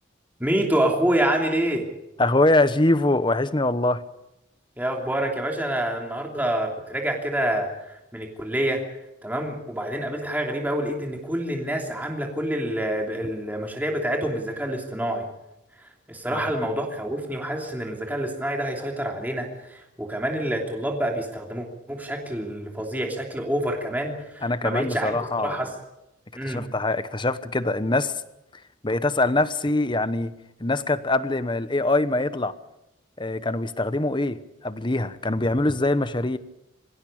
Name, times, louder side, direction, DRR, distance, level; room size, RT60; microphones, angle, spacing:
voice 1, 0.4-1.8 4.8-8.8 9.2-15.3 16.1-25.7 26.3-26.7, right 1 dB, 10° right, 3.0 m, -27 dB
voice 2, 2.2-4.0 16.3-16.4 24.4-25.6 26.4-28.2 28.8-30.3 30.6-32.5 33.2-36.4, left 2 dB, 25° left, 0.9 m, -23 dB
24.0 x 16.5 x 8.6 m
head